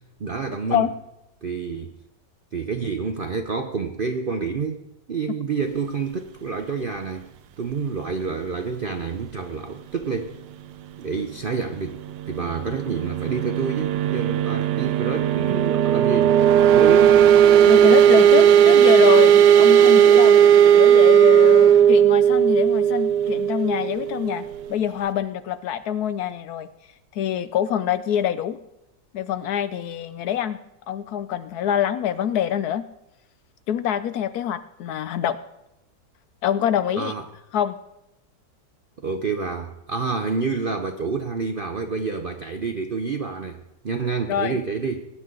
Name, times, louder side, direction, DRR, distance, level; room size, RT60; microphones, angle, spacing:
voice 1, 0.2-0.9 1.4-1.9 2.5-4.8 5.1-7.3 7.6-10.4 11.0-12.0 12.3-16.4 16.7-17.2 37.0-37.2 39.0-45.1, right 5 dB, 60° right, 6 dB, 0.5 m, -28 dB
sound 1, 12.1-24.7, right 9 dB, 85° right, 1.3 m, -16 dB
voice 2, 17.7-20.4 20.7-24.4 24.7-26.7 27.1-28.6 29.1-30.6 30.9-32.8 33.7-35.4 36.4-37.1 37.5-37.7 44.3-44.6, left 10 dB, 70° left, 13 dB, 1.0 m, -25 dB
20.0 x 9.4 x 3.8 m, 0.88 s
omnidirectional pair, 1.9 m